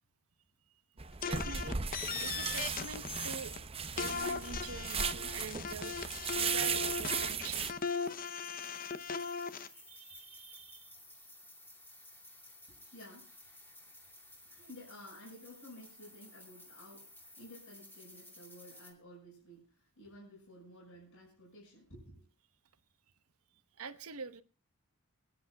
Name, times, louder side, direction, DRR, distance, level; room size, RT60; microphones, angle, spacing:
sound 1, 1.0-7.7, right 6 dB, 25° right, 0.7 m, -37 dB
sound 2, 1.2-3.6 4.0-9.7, left 6 dB, 40° left, 0.7 m, -38 dB
voice 1, 1.2-1.8 2.2-3.6 4.0-7.7 9.7-10.9 23.8-24.4, right 5 dB, 75° right, 1.0 m, -46 dB
sound 3, 5.3-18.9, left 1 dB, 10° left, 2.7 m, -56 dB
voice 2, 12.7-13.3 14.5-22.2, left 1 dB, 65° left, 6.0 m, -54 dB
28.0 x 10.5 x 2.3 m
head